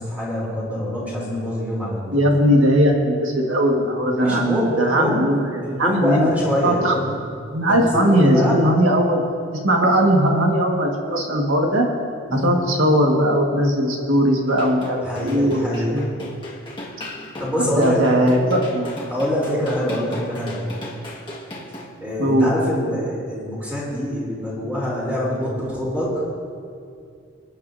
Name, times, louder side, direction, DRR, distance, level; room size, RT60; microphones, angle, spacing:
voice 1, 0.0-2.2 4.2-5.3 5.6-7.2 7.7-8.6 12.3-12.5 15.0-16.0 17.4-18.0 19.1-20.6 22.0-26.1, equal, 10° right, -6 dB, 3.3 m, -25 dB
voice 2, 2.1-6.3 6.6-7.0 7.5-9.3 9.6-11.9 12.3-16.3 17.6-19.0 22.2-22.5, equal, 75° right, 0 dB, 1.7 m, -19 dB
sound 1, 14.5-21.9, left 1 dB, 25° left, 1.7 m, -36 dB
26.5 x 9.4 x 2.7 m, 2.3 s
head